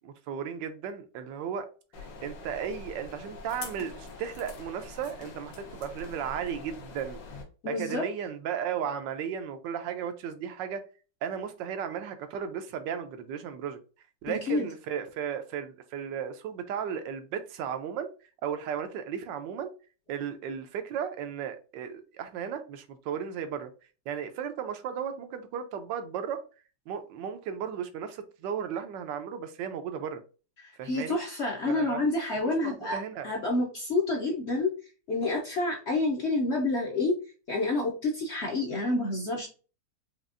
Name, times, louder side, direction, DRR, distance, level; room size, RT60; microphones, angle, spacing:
voice 1, 0.0-1.7 2.0-7.2 7.7-10.8 11.2-13.8 14.2-18.1 18.4-19.7 20.1-23.7 24.1-26.4 26.9-30.2 30.8-31.2 31.7-32.0 32.6-33.3, right 8 dB, 85° right, 1.3 m, -35 dB
sound 1, 1.9-7.4, left 3 dB, 80° left, 1.6 m, -44 dB
voice 2, 7.6-8.0 14.3-14.7 30.6-34.7 35.1-37.2 37.5-39.5, left 2 dB, 55° left, 0.8 m, -28 dB
5.1 x 2.4 x 2.5 m
omnidirectional pair, 1.9 m